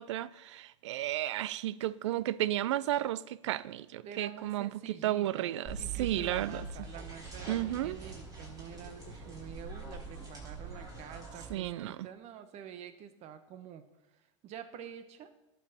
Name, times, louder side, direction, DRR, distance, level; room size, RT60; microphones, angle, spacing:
voice 1, 0.0-4.7 5.0-6.6 7.5-8.0 11.5-12.0, right 13 dB, 65° right, 0.4 m, -33 dB
voice 2, 4.0-13.9 14.1-15.3, right 9 dB, 45° right, 1.1 m, -48 dB
sound 1, 5.6-11.5, right 4 dB, 25° right, 4.6 m, -43 dB
18.0 x 6.9 x 4.2 m
hypercardioid pair, 85°, 16 cm